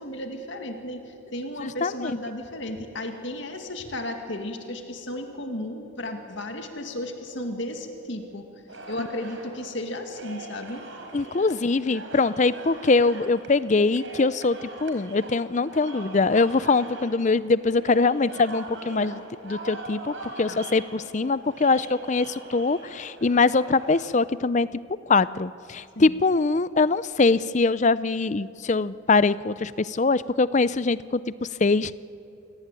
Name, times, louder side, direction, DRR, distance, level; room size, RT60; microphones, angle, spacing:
voice 1, 0.0-8.5 8.9-10.8 20.5-20.7 26.0-26.2, left 1 dB, 60° left, 5 dB, 2.1 m, -34 dB
voice 2, 1.6-2.2 9.0-9.1 11.1-24.7 25.1-31.9, left 3 dB, 35° left, 17 dB, 0.5 m, -23 dB
sound 1, 8.7-24.0, right 2 dB, 65° right, 4.2 m, -41 dB
27.0 x 18.5 x 9.1 m, 2.7 s
head